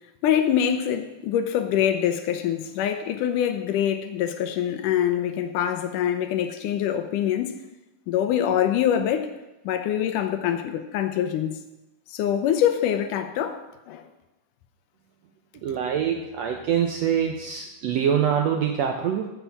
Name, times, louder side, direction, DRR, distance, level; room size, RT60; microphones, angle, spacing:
voice 1, 0.2-7.6 8.1-9.3 9.7-11.6 12.1-14.1, left 10 dB, 80° left, 2.3 m, -24 dB
voice 2, 15.6-19.3, right 8 dB, 80° right, 1.5 m, -24 dB
13.0 x 5.7 x 7.1 m
omnidirectional pair, 3.8 m